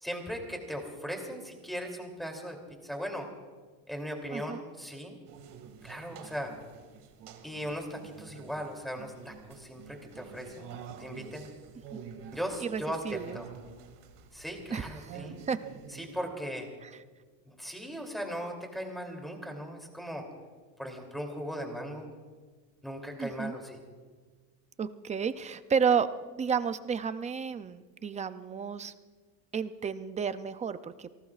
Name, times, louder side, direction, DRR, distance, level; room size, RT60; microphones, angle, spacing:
voice 1, 0.0-2.6 2.8-3.3 3.9-5.2 5.8-6.5 7.4-10.7 11.0-11.5 12.3-13.5 14.3-15.4 15.9-16.7 17.5-20.3 20.8-22.1 22.8-23.8, equal, ahead, 2 dB, 2.9 m, -38 dB
voice 2, 4.3-4.6 11.9-12.0 12.6-13.4 14.7-15.2 15.5-15.6 16.8-16.9 23.2-23.5 24.8-28.9 29.5-31.2, right 6 dB, 15° right, 12 dB, 0.4 m, -32 dB
sound 1, 5.3-16.2, right 7 dB, 60° right, 2.2 m, -48 dB
29.0 x 18.5 x 2.4 m, 1.5 s
cardioid pair, 135°, 46 cm